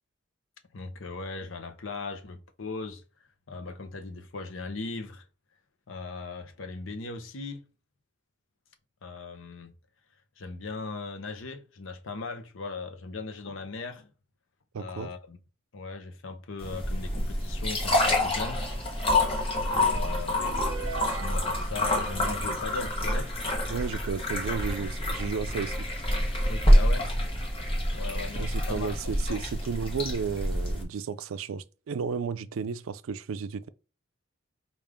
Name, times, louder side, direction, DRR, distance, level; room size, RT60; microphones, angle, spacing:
voice 1, 0.7-3.0 3.5-5.2 5.9-7.7 9.0-9.7 10.4-14.1 14.8-15.4 15.7-18.6 19.7-20.4 21.1-23.3 26.5-27.1 27.9-29.4, left 3 dB, 75° left, 0.7 m, -38 dB
voice 2, 14.7-15.1 23.7-25.8 28.3-33.7, right 6 dB, 90° right, 0.4 m, -33 dB
sound 1, 16.6-30.8, left 1 dB, 25° left, 1.0 m, -27 dB
sound 2, 20.4-21.9, right 4 dB, 70° right, 0.8 m, -39 dB
5.0 x 2.5 x 3.4 m
head